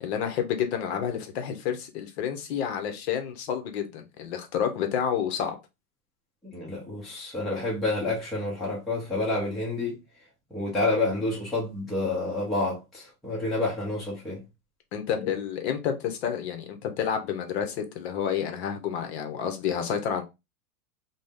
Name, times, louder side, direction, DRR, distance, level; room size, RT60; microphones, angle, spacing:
voice 1, 0.0-5.6 14.9-20.2, left 8 dB, 45° left, 0.7 m, -29 dB
voice 2, 6.5-10.0 10.5-14.4, left 2 dB, ahead, 0.5 m, -29 dB
2.6 x 2.1 x 3.4 m
hypercardioid pair, 135°, 44 cm